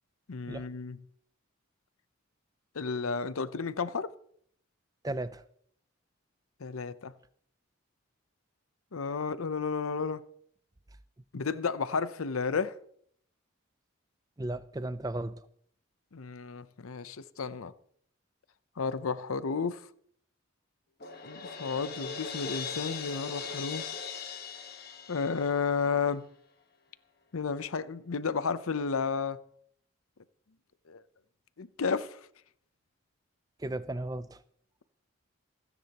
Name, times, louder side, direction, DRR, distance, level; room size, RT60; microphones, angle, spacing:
voice 1, 0.3-1.0 2.7-4.1 6.6-7.1 8.9-10.2 11.3-12.8 16.1-17.7 18.8-19.9 21.2-23.9 25.1-26.3 27.3-29.4 30.9-31.0 31.6-32.2, left 5 dB, 80° left, 0.7 m, -32 dB
voice 2, 5.0-5.4 14.4-15.4 33.6-34.4, right 1 dB, 15° right, 0.5 m, -35 dB
Crash cymbal, 21.0-25.9, left 6 dB, 45° left, 1.4 m, -39 dB
27.0 x 9.8 x 3.0 m
head